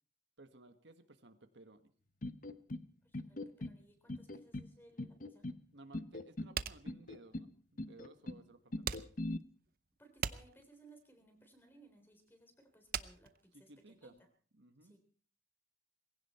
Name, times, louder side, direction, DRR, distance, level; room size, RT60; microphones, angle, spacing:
voice 1, 0.4-1.9 5.7-9.1 13.5-14.1 14.6-14.9, right 2 dB, 80° right, 9 dB, 1.6 m, -58 dB
sound 1, 2.2-2.9 3.1-3.8 4.1-4.7 5.0-5.6 5.9-6.5 6.9-7.5 7.8-8.4 8.7-9.4, left 1 dB, 45° left, 0.8 m, -41 dB
voice 2, 3.0-5.5 10.0-14.3 14.8-15.0, right 2 dB, 10° left, 6 dB, 3.6 m, -63 dB
sound 2, 6.5-14.2, right 8 dB, 55° right, 0.7 m, -43 dB
19.5 x 16.5 x 4.3 m, 0.43 s
head